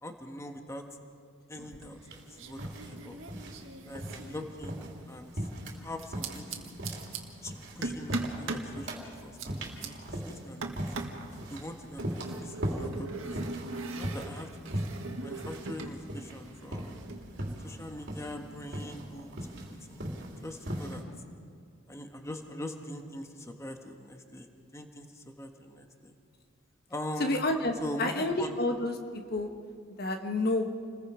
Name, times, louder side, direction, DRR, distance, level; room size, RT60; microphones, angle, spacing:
voice 1, 0.0-0.8 1.5-3.2 3.8-4.8 5.1-5.5 5.7-6.7 7.4-10.7 11.5-13.3 13.9-14.8 15.1-17.0 17.6-20.1 20.4-21.0 21.9-26.2 26.9-27.4 27.8-28.5, left 1 dB, 15° left, 4 dB, 1.3 m, -42 dB
sound 1, 1.6-2.1 2.4-5.0 6.0-7.2 7.8-8.7 9.1-9.9 10.6-11.2 12.0-16.0 16.2-17.5, right 3 dB, 70° right, 1.8 m, -40 dB
sound 2, 2.1-21.0, equal, 55° right, 3.3 m, -39 dB
voice 2, 27.2-28.9 29.3-29.5 30.0-30.7, left 2 dB, 50° left, 5 dB, 1.2 m, -29 dB
28.5 x 21.0 x 5.0 m, 2.2 s
head